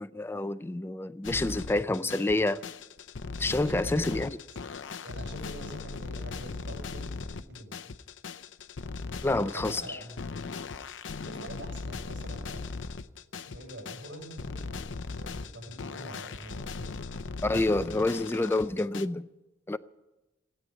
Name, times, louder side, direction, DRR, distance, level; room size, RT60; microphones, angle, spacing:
voice 1, 0.0-2.6 3.4-4.4 9.2-10.0 17.4-19.3 19.7-19.8, left 2 dB, 15° left, 0.4 m, -28 dB
sound 1, 1.2-19.1, left 4 dB, 85° left, 0.7 m, -38 dB
voice 2, 3.6-4.3 5.0-7.8 9.5-10.3 11.2-12.9 13.3-17.1, right 1 dB, 85° right, 6.2 m, -45 dB
16.5 x 9.4 x 8.9 m
head